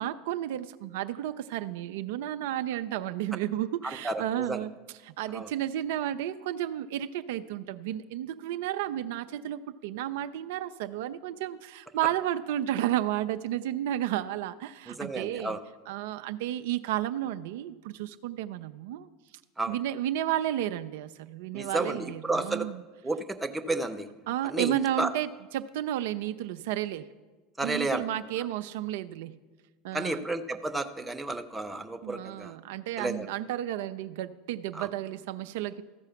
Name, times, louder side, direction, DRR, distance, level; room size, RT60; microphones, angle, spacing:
voice 1, 0.0-15.6 15.9-19.1 19.7-22.8 24.3-27.1 27.6-29.4 29.8-30.3 32.0-35.8, right 12 dB, 70° right, 10 dB, 0.3 m, -32 dB
voice 2, 4.0-4.6 5.3-5.5 14.9-15.6 19.6-19.7 21.5-22.7 23.0-24.1 24.4-25.1 27.6-28.0 29.9-32.5 33.0-33.3 34.7-34.9, right 2 dB, 10° right, 7 dB, 0.7 m, -32 dB
14.0 x 4.8 x 5.8 m, 1.3 s
hypercardioid pair, 80°, 0 cm